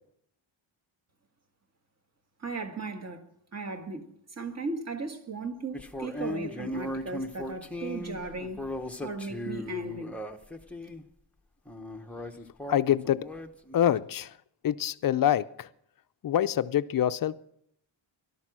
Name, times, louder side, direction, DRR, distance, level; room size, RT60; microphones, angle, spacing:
voice 1, 2.4-3.2 3.5-4.1 4.4-8.6 9.0-10.2, right 3 dB, 35° right, 1.6 m, -36 dB
sound 1, 5.7-11.0 11.7-13.9, left 1 dB, 5° left, 0.8 m, -37 dB
voice 2, 12.7-13.2 13.7-14.3 14.6-15.7 16.2-17.4, left 11 dB, 45° left, 0.5 m, -25 dB
17.5 x 12.0 x 6.1 m
wide cardioid pair, 170°, 48 cm